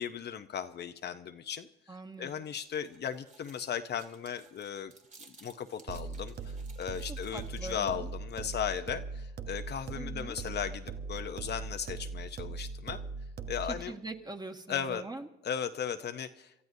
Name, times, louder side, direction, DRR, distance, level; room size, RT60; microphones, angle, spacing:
voice 1, 0.0-1.7 2.2-4.9 5.3-13.0 13.5-13.9 14.7-15.0 15.4-16.5, left 8 dB, 55° left, 8 dB, 0.8 m, -36 dB
voice 2, 1.9-2.3 7.1-8.1 9.9-10.4 13.6-15.3, right 2 dB, 20° right, 4 dB, 1.7 m, -42 dB
sound 1, 2.4-8.1, right 3 dB, 40° right, 1.9 m, -58 dB
sound 2, 5.9-13.9, right 4 dB, 55° right, 1.0 m, -40 dB
27.5 x 13.5 x 2.7 m, 0.91 s
cardioid pair, 90°, 20 cm